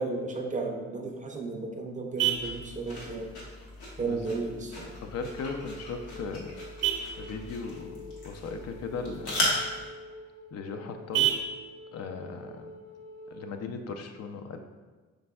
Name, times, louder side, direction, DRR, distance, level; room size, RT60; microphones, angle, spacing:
voice 1, 0.0-3.3 4.0-4.9, right 3 dB, 25° right, 2 dB, 0.5 m, -34 dB
Vehicle horn car horn honking, 0.9-13.9, right 10 dB, 60° right, 0.7 m, -37 dB
sound 1, 2.3-9.9, left 1 dB, 80° left, 1.3 m, -37 dB
voice 2, 5.0-6.6 7.2-9.6 10.5-11.4 11.9-12.7 13.3-14.6, left 4 dB, 55° left, 6 dB, 0.4 m, -38 dB
Wind instrument woodwind instrument, 5.1-13.6, left 2 dB, 40° left, 0.9 m, -47 dB
5.2 x 3.3 x 2.2 m, 1.3 s
cardioid pair, 90°, 30 cm